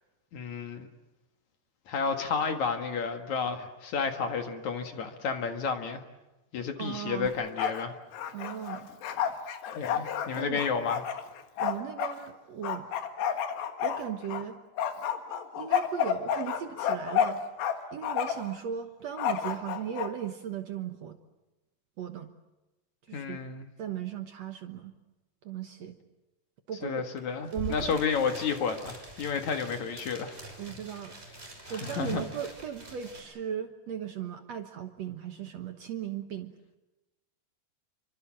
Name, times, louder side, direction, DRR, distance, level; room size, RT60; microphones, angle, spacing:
voice 1, 0.3-0.9 1.9-6.0 6.5-8.0 9.8-11.0 23.1-23.7 26.8-30.4 31.7-32.2, left 5 dB, 55° left, 6 dB, 2.5 m, -31 dB
voice 2, 6.8-7.3 8.3-8.9 10.3-10.6 11.6-12.9 13.8-14.6 15.5-17.4 17.9-21.2 22.0-22.3 23.1-23.4 23.8-24.9 25.4-26.0 26.7-27.0 27.5-28.0 30.6-36.5, right 9 dB, 70° right, 6 dB, 1.6 m, -37 dB
Bark, 7.3-7.8 8.1-12.1 12.6-14.4 14.8-17.7 18.0-18.5 19.2-20.1, left 8 dB, 80° left, 3.7 m, -30 dB
sound 1, 27.2-27.3 27.4-33.2, right 2 dB, 15° right, 6.2 m, -44 dB
28.0 x 25.0 x 7.5 m, 1.0 s
omnidirectional pair, 4.8 m